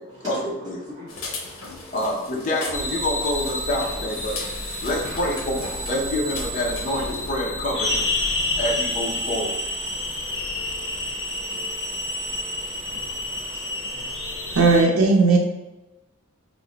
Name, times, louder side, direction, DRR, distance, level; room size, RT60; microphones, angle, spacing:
voice 1, 0.3-0.8 1.9-4.4 4.8-8.1 8.6-9.5, left 1 dB, 35° left, -2 dB, 0.6 m, -27 dB
voice 2, 1.0-2.0 4.4-4.9 8.3-8.6 9.8-14.6, equal, 20° right, -12 dB, 0.8 m, -44 dB
sound 1, 1.1-7.3, left 3 dB, 85° left, 0.6 m, -37 dB
sound 2, 2.7-14.8, left 1 dB, 65° left, 0.9 m, -29 dB
voice 3, 14.5-15.4, right 3 dB, 80° right, -1 dB, 0.6 m, -16 dB
2.9 x 2.1 x 3.7 m, 1.0 s
head